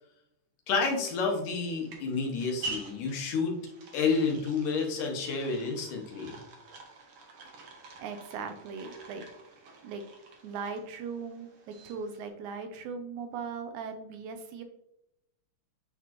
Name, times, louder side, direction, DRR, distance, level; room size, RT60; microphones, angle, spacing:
voice 1, 0.7-3.6 3.9-6.4, left 4 dB, 80° left, 1 dB, 2.5 m, -30 dB
sound 1, 1.0-12.3, right 3 dB, 65° right, 1.3 m, -47 dB
voice 2, 8.0-9.3 9.8-10.1 10.4-14.6, right 5 dB, 80° right, 7 dB, 1.9 m, -39 dB
9.2 x 4.2 x 2.9 m, 0.84 s
omnidirectional pair, 3.7 m